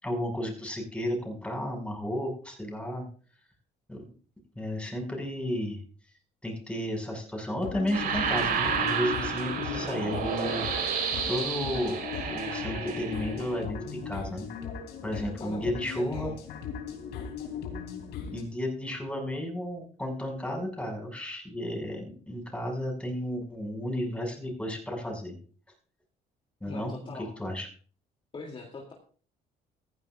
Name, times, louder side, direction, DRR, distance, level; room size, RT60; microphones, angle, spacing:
voice 1, 0.0-3.1 3.9-4.1 4.6-5.8 6.4-10.7 11.3-14.5 15.0-16.3 18.3-25.4 26.6-27.7, equal, 5° left, 1 dB, 6.1 m, -33 dB
sound 1, 7.6-18.4, left 6 dB, 85° left, 3.5 m, -38 dB
sound 2, 7.9-13.6, right 6 dB, 60° right, 4.2 m, -31 dB
voice 2, 15.4-16.4 26.7-27.3 28.3-28.9, left 3 dB, 30° left, 0 dB, 2.9 m, -41 dB
15.5 x 15.0 x 2.5 m, 0.42 s
cardioid pair, 110°, 17 cm